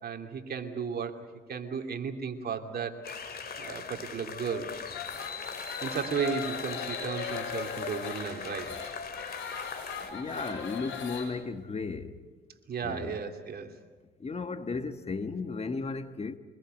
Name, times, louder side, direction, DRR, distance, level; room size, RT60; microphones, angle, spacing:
voice 1, 0.0-1.2 1.5-3.0 3.6-4.7 5.8-8.7 12.7-13.7, right 6 dB, 50° right, 2.8 m, -34 dB
sound 1, 3.0-10.1, left 6 dB, 50° left, 2.7 m, -39 dB
sound 2, 4.9-11.3, left 7 dB, 75° left, 6.9 m, -40 dB
voice 2, 10.0-12.2 12.8-13.2 14.2-16.4, left 4 dB, 30° left, 1.4 m, -35 dB
24.5 x 21.0 x 7.9 m
cardioid pair, 90°, 20 cm